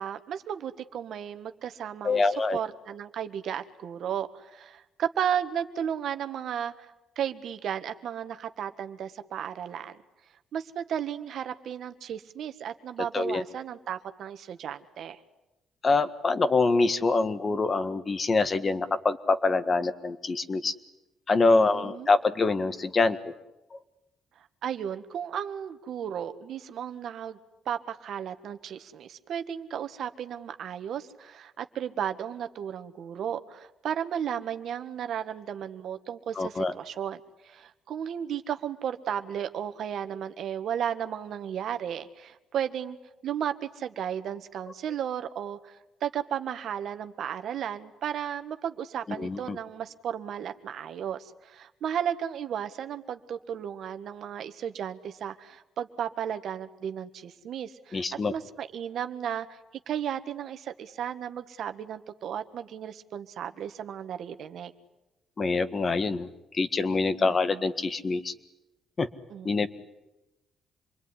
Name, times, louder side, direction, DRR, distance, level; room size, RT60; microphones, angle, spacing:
voice 1, 0.0-2.2 2.5-10.0 10.5-15.2 21.4-22.1 24.6-27.4 27.6-37.2 37.4-43.0 43.2-58.0 58.3-59.6 59.9-64.7 67.2-67.6 69.3-69.7, right 9 dB, 70° right, 9 dB, 1.6 m, -34 dB
voice 2, 2.0-2.6 13.1-13.4 15.8-20.7 21.3-23.3 23.7-23.8 36.3-36.7 49.2-49.6 57.9-58.3 65.4-66.3 66.5-68.3 69.0-69.1 69.4-69.7, left 3 dB, 35° left, 12 dB, 1.6 m, -25 dB
27.0 x 21.5 x 9.9 m, 0.98 s
cardioid pair, 90°, 0 cm